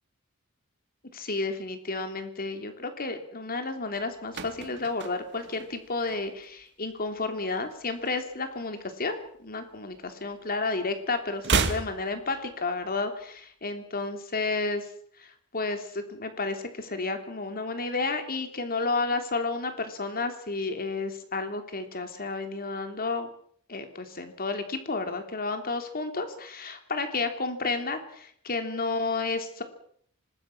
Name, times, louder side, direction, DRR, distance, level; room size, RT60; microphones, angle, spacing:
voice 1, 1.1-14.9 15.2-23.3 23.7-29.6, left 3 dB, 45° left, 7 dB, 3.2 m, -31 dB
sound 1, 3.9-6.6 6.9-7.2 7.5-8.9 9.2-10.6 10.8-12.9 13.2-13.3, right 4 dB, 55° right, 2.1 m, -33 dB
26.0 x 20.0 x 6.1 m, 0.62 s
head